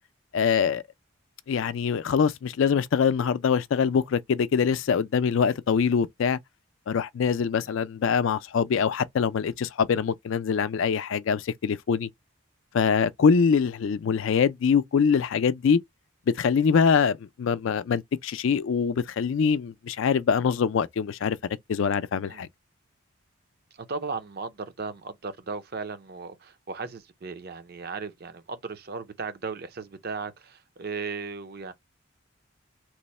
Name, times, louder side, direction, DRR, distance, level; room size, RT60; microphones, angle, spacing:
voice 1, 0.3-0.8 1.5-6.4 6.9-12.1 12.7-15.8 16.3-21.4 21.7-22.5, left 6 dB, 60° left, 0.3 m, -24 dB
voice 2, 23.7-31.7, right 4 dB, 45° right, 0.5 m, -36 dB
3.0 x 2.0 x 4.1 m
head